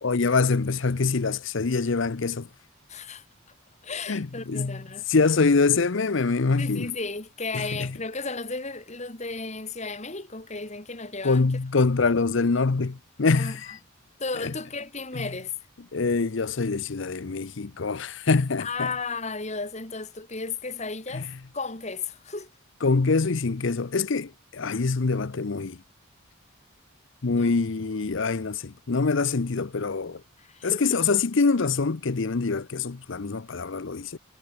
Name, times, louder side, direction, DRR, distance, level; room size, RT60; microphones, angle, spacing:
voice 1, 0.0-2.5 4.1-4.8 5.1-6.9 7.5-8.0 11.2-13.8 14.4-14.5 15.1-15.3 15.9-18.9 21.1-21.3 22.8-25.8 27.2-30.2 30.6-34.2, left 4 dB, 60° left, 0.7 m, -25 dB
voice 2, 2.9-3.2 3.8-5.1 6.6-11.4 13.3-13.6 14.2-15.5 18.6-21.3 21.5-22.5 27.3-27.6 30.4-31.2, left 4 dB, 30° left, 2.3 m, -34 dB
head